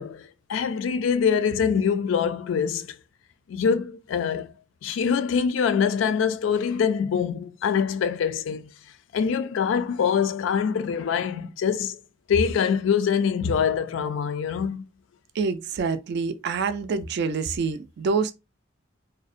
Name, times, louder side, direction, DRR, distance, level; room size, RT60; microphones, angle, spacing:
voice 1, 0.0-3.0 3.5-4.5 4.8-8.7 9.1-12.0 12.3-14.8, left 7 dB, 70° left, 0.3 m, -24 dB
voice 2, 15.4-18.3, right 5 dB, 60° right, 0.3 m, -26 dB
2.6 x 2.0 x 2.4 m
head